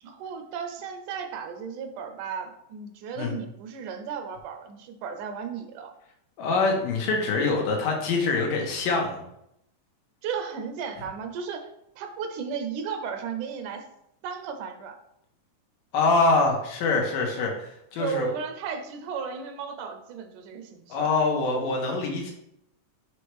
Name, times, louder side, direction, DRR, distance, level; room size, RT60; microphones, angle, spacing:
voice 1, 0.0-5.9 10.2-11.7 12.0-13.9 14.2-15.0 18.0-21.1, right 6 dB, 75° right, 6 dB, 2.1 m, -34 dB
voice 2, 6.4-9.2 15.9-18.3 20.9-22.3, left 3 dB, 90° left, 1 dB, 2.8 m, -24 dB
7.1 x 3.3 x 4.7 m, 0.78 s
omnidirectional pair, 3.7 m